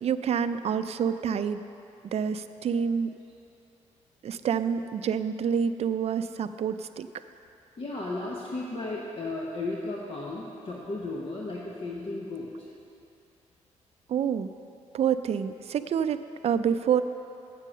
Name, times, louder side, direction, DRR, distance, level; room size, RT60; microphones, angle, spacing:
voice 1, 0.0-1.6 2.1-3.1 4.2-7.1 14.1-14.5 14.9-17.0, right 7 dB, 55° right, 11 dB, 0.4 m, -27 dB
voice 2, 7.8-12.5, left 2 dB, 45° left, -3 dB, 1.1 m, -34 dB
7.5 x 7.4 x 6.4 m, 2.8 s
cardioid pair, 75°, 13 cm